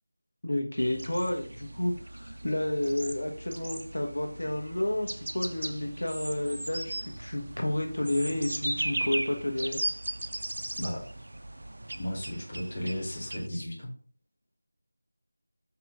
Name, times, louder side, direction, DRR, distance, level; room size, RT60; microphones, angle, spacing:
voice 1, 0.4-9.8, left 1 dB, 90° left, 2 dB, 1.1 m, -31 dB
sound 1, 0.8-13.5, right 1 dB, 70° right, 0.3 m, -37 dB
voice 2, 12.0-13.9, equal, 30° left, -3 dB, 1.0 m, -35 dB
4.9 x 2.9 x 3.5 m, 0.42 s
figure-of-eight pair, 175°, 0 cm